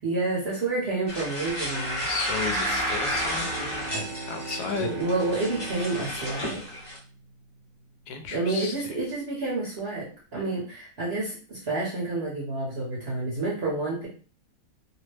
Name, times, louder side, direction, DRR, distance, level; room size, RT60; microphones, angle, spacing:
voice 1, 0.0-2.0 3.4-3.5 3.9-4.1 4.8-6.6 8.3-14.1, right 2 dB, 50° right, -4 dB, 0.9 m, -29 dB
sound 1, 1.1-7.0, equal, 30° left, 0.6 m, -31 dB
voice 2, 2.0-5.0 8.1-8.7, left 5 dB, 85° left, 5 dB, 1.2 m, -34 dB
Bowed string instrument, 2.5-7.6, right 4 dB, 75° right, 1.0 m, -40 dB
2.9 x 2.0 x 3.2 m, 0.40 s
omnidirectional pair, 1.7 m